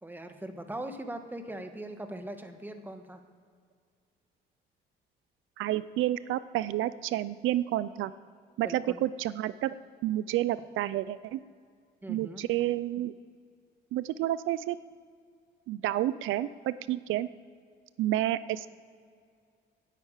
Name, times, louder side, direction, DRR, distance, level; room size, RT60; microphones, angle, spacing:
voice 1, 0.0-3.2 8.6-9.0 12.0-12.4, right 1 dB, 10° right, 6 dB, 1.4 m, -40 dB
voice 2, 5.6-8.1 8.6-9.7 10.0-11.4 12.1-13.1 13.9-14.8 15.7-17.3 18.0-18.7, right 14 dB, 85° right, 16 dB, 0.4 m, -30 dB
10.0 x 8.0 x 8.9 m, 2.1 s
cardioid pair, 90°, 20 cm